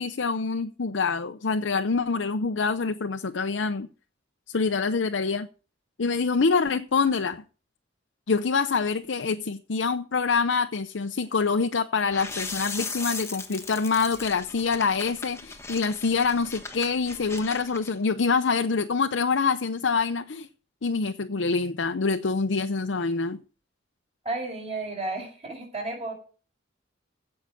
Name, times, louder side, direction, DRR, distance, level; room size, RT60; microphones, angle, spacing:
voice 1, 0.0-3.9 4.5-5.5 6.0-7.4 8.3-20.5 20.8-23.4, left 4 dB, 70° left, 0.6 m, -26 dB
sound 1, 12.1-17.9, left 4 dB, 15° left, 1.3 m, -38 dB
voice 2, 24.2-26.1, right 2 dB, 35° right, 5.7 m, -32 dB
16.0 x 5.7 x 6.4 m
head